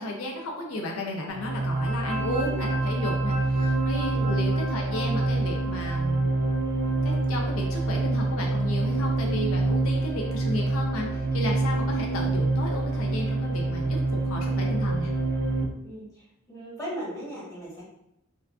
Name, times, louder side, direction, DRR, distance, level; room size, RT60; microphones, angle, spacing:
voice 1, 0.0-6.3 7.0-15.1, left 1 dB, 80° left, 0 dB, 0.5 m, -33 dB
sound 1, 1.3-15.6, right 2 dB, 55° right, 0.4 m, -26 dB
voice 2, 15.8-17.8, equal, 15° left, -9 dB, 1.2 m, -37 dB
3.6 x 2.2 x 2.3 m, 0.84 s
head